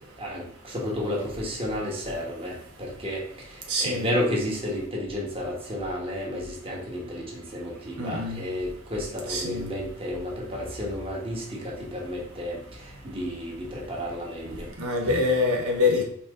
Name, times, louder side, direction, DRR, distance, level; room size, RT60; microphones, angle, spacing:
voice 1, 0.2-3.2 3.5-14.7 15.0-15.2, left 1 dB, 25° right, -3 dB, 1.7 m, -32 dB
voice 2, 3.7-4.1 8.0-8.5 9.3-9.7 14.8-16.0, left 3 dB, 75° right, 1 dB, 1.1 m, -25 dB
5.9 x 4.3 x 3.9 m, 0.70 s
head